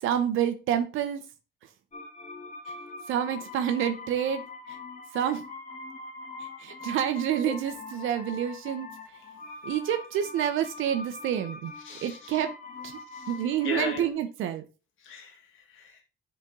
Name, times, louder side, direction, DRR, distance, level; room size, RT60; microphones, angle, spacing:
voice 1, 0.0-1.2 3.1-4.4 4.7-4.8 5.1-5.4 6.6-8.9 9.6-11.7 12.0-12.5 12.8-13.0 13.3-14.6, right 10 dB, 85° right, 8 dB, 0.9 m, -28 dB
sound 1, 1.9-14.1, left 3 dB, 35° left, 2.0 m, -43 dB
voice 2, 11.8-12.4 13.1-13.3 13.6-14.0 15.0-16.0, left 5 dB, 85° left, 2 dB, 2.0 m, -37 dB
7.4 x 4.4 x 3.7 m, 0.32 s
cardioid pair, 90°, 20 cm